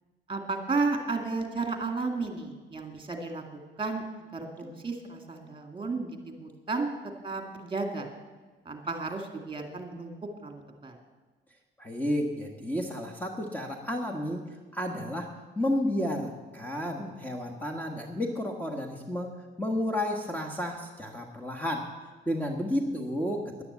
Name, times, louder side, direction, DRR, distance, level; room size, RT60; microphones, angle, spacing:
voice 1, 0.3-3.4 3.8-6.9 7.2-8.1 8.6-11.0, right 3 dB, 25° right, 4 dB, 2.4 m, -33 dB
voice 2, 11.8-19.3 19.6-21.9 22.2-23.6, left 1 dB, 10° left, 1 dB, 1.6 m, -32 dB
11.0 x 10.0 x 8.3 m, 1.3 s
cardioid pair, 90°, 20 cm